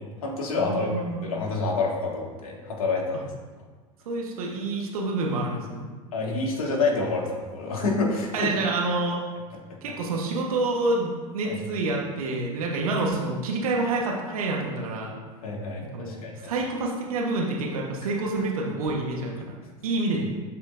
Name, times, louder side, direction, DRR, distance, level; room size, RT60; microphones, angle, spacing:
voice 1, 0.0-0.9 1.2-3.3 6.1-8.5 11.4-11.6 15.4-16.5, left 3 dB, 80° left, -2 dB, 1.9 m, -28 dB
voice 2, 0.6-1.3 3.1-3.2 4.0-5.9 8.3-9.2 9.8-15.1 15.9-20.3, right 2 dB, 80° right, -1 dB, 1.2 m, -28 dB
12.5 x 4.4 x 2.6 m, 1.4 s
hypercardioid pair, 90°, 18 cm